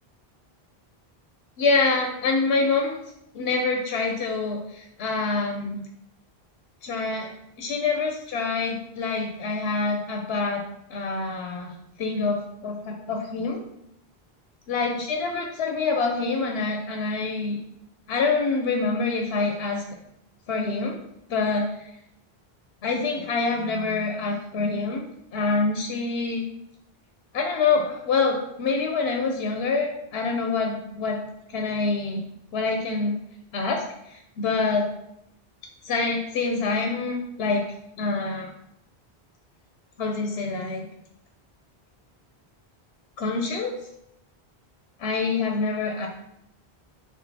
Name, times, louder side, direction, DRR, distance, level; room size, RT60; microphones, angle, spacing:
voice 1, 1.6-2.9 3.3-5.8 6.8-7.3 7.6-10.6 10.9-11.7 12.0-13.6 14.7-17.6 18.1-19.8 20.5-21.0 21.3-21.9 22.8-25.1 25.3-26.4 27.3-31.2 31.5-32.2 32.5-33.2 33.5-34.9 35.8-37.6 38.0-38.5 40.0-40.8 43.2-43.8 45.0-46.1, left 4 dB, 85° left, 2 dB, 0.8 m, -26 dB
6.3 x 2.6 x 2.7 m, 0.80 s
omnidirectional pair, 1.0 m